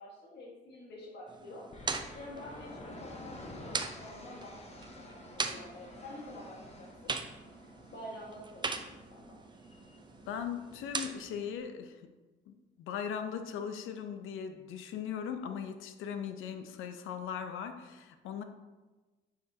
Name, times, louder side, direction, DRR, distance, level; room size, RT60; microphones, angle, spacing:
voice 1, 0.0-1.7 2.1-7.1 7.9-9.4, left 1 dB, 60° left, -3 dB, 1.5 m, -48 dB
sound 1, 1.3-11.4, right 4 dB, 25° right, 0.5 m, -41 dB
sound 2, 1.7-11.6, left 1 dB, 30° left, 1.1 m, -51 dB
voice 2, 10.3-12.0 12.5-18.4, left 7 dB, 90° left, 8 dB, 0.6 m, -39 dB
9.1 x 5.1 x 2.8 m, 1.2 s
cardioid pair, 90°, 20 cm